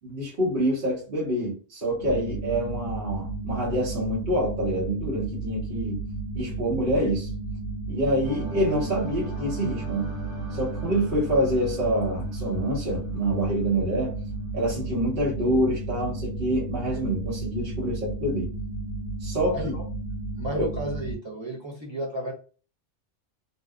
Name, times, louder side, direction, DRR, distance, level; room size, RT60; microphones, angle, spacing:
voice 1, 0.0-6.0 6.3-7.3 7.9-10.1 10.5-14.1 14.5-18.5 19.2-19.7 20.5-20.7, right 1 dB, 55° right, -6 dB, 1.1 m, -26 dB
sound 1, 2.0-21.2, right 2 dB, 65° left, 0.8 m, -33 dB
sound 2, 8.2-14.2, right 4 dB, 85° right, 1.0 m, -42 dB
voice 2, 19.5-19.9 20.3-22.3, right 1 dB, 30° right, -4 dB, 0.6 m, -33 dB
2.7 x 2.2 x 2.3 m, 0.37 s
omnidirectional pair, 1.2 m